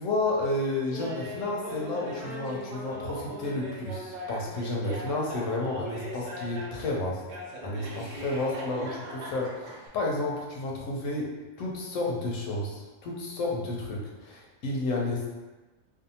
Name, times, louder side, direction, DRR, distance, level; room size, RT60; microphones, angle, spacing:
voice 1, 0.0-7.2 7.6-11.3 11.6-15.3, left 2 dB, 90° left, -2 dB, 1.0 m, -31 dB
Laughter, 0.9-6.9 7.3-9.9, equal, 85° right, 1.0 m, -39 dB
2.6 x 2.3 x 2.7 m, 1.2 s
omnidirectional pair, 1.3 m